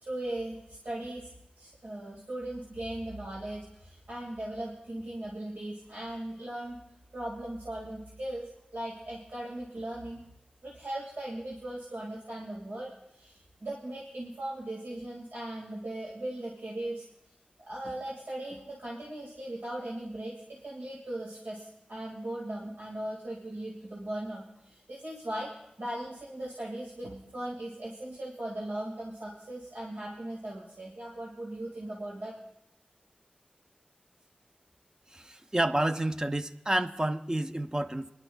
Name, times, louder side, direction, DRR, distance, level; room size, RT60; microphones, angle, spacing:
voice 1, 0.0-6.8 7.1-10.2 10.6-17.1 17.6-25.5 25.8-32.3, right 1 dB, 80° right, -4 dB, 2.1 m, -38 dB
voice 2, 35.1-38.1, right 1 dB, 25° right, 9 dB, 0.6 m, -29 dB
26.0 x 11.0 x 2.3 m, 0.83 s
wide cardioid pair, 50°, 3 cm